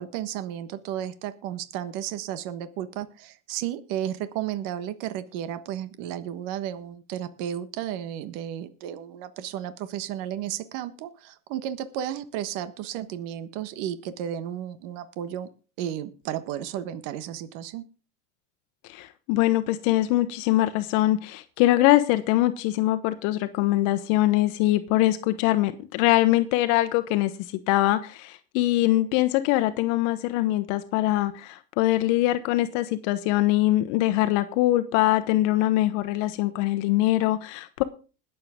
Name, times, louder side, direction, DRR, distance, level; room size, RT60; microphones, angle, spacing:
voice 1, 0.0-15.5 15.8-17.8, right 10 dB, 60° right, 12 dB, 1.4 m, -33 dB
voice 2, 18.9-27.3 27.7-37.8, left 16 dB, 65° left, 11 dB, 1.1 m, -23 dB
21.0 x 7.6 x 3.7 m, 0.36 s
supercardioid pair, 120°, 36 cm